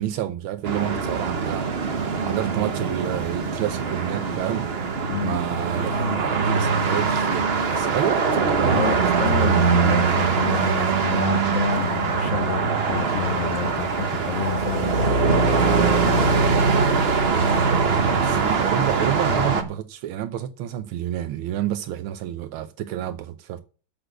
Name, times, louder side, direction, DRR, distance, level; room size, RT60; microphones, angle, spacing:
voice 1, 0.0-1.7 2.2-8.2 18.2-23.6, right 12 dB, 80° right, 1.5 m, -29 dB
sound 1, 0.6-19.6, right 5 dB, 40° right, 1.0 m, -22 dB
voice 2, 5.1-5.4 8.7-16.6, left 7 dB, 70° left, 0.7 m, -29 dB
7.9 x 6.1 x 8.0 m
omnidirectional pair, 2.3 m